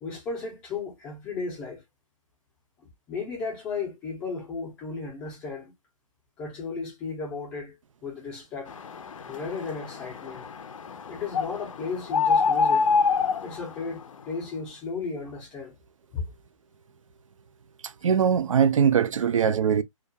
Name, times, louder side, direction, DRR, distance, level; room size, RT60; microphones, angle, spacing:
voice 1, 0.0-1.8 2.8-5.7 6.4-7.8 8.0-8.7 9.3-10.5 11.1-12.9 13.4-15.8 16.1-16.2 19.2-19.3, left 4 dB, 5° left, 0.5 m, -35 dB
sound 1, 8.7-14.2, left 5 dB, 70° left, 0.5 m, -27 dB
voice 2, 18.0-19.8, right 7 dB, 70° right, 0.4 m, -21 dB
2.3 x 2.3 x 2.6 m
hypercardioid pair, 170°, 17 cm